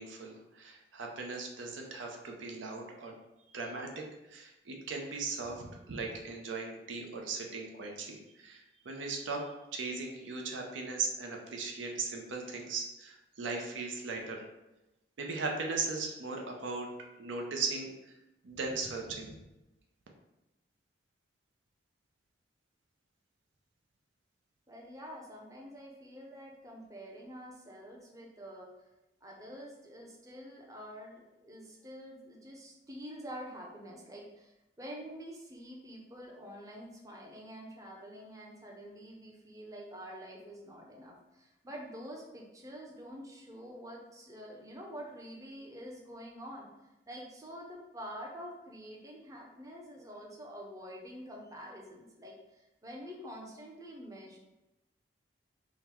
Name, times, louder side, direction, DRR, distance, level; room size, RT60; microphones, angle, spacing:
voice 1, 0.0-3.1 3.5-14.4 15.2-16.9 17.2-18.1 18.4-19.3, right 4 dB, 85° right, 1 dB, 0.6 m, -38 dB
voice 2, 24.7-28.7 29.2-34.5 34.8-46.7 47.1-54.4, equal, 20° right, -1 dB, 0.6 m, -47 dB
3.8 x 2.1 x 4.3 m, 0.98 s
head